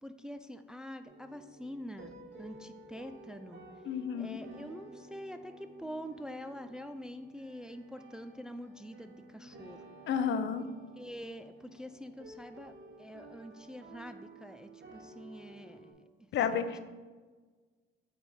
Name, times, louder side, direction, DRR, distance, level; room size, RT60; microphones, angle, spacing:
voice 1, 0.0-3.6 4.2-9.8 10.9-15.9 16.5-16.7, equal, 5° right, 9 dB, 0.3 m, -45 dB
sound 1, 1.0-15.9, right 2 dB, 65° right, 1.3 m, -53 dB
voice 2, 3.9-4.4 10.1-10.6 16.3-16.8, left 7 dB, 70° left, 10 dB, 0.5 m, -31 dB
7.7 x 3.4 x 4.2 m, 1.4 s
cardioid pair, 90°, 20 cm